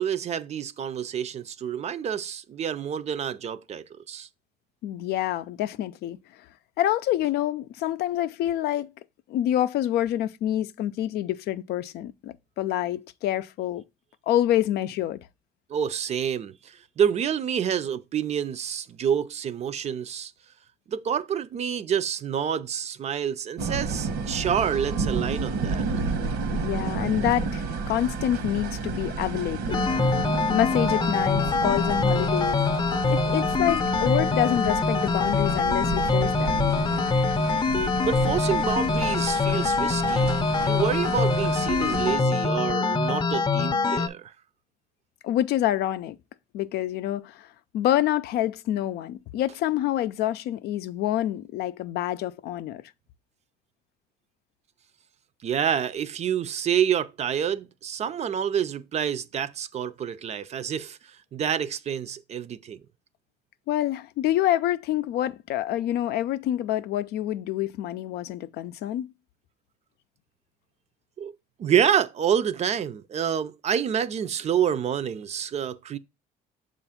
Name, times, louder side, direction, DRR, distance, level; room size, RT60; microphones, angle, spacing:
voice 1, 0.0-4.3 15.7-20.3 20.9-25.8 38.0-44.3 55.4-62.8 71.2-76.0, right 8 dB, 40° right, 0.4 m, -28 dB
voice 2, 4.8-6.2 6.8-8.9 9.3-13.8 14.3-15.2 26.5-27.6 27.9-29.9 30.5-32.6 33.1-36.7 45.2-46.2 46.5-47.5 47.7-52.8 63.7-69.1, left 12 dB, 75° left, 0.4 m, -27 dB
sound 1, 23.6-42.2, right 4 dB, 80° right, 1.0 m, -31 dB
sound 2, 29.7-44.1, left 4 dB, 25° left, 0.7 m, -24 dB
6.8 x 2.5 x 5.6 m
cardioid pair, 110°, 17 cm